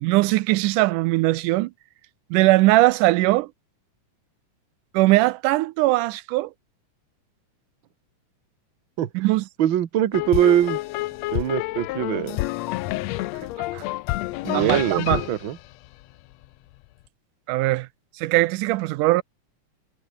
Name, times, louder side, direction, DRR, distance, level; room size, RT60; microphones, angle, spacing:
voice 1, 0.0-1.7 2.3-3.5 4.9-6.5 9.1-9.5 13.7-13.9 14.5-15.2 17.5-17.9 18.2-19.2, right 19 dB, 85° right, 2.1 m, -20 dB
voice 2, 9.6-10.8 11.3-12.4 14.4-15.6, right 11 dB, 55° right, 1.5 m, -22 dB
sound 1, 10.1-16.5, left 18 dB, 85° left, 1.5 m, -29 dB
omnidirectional pair, 3.6 m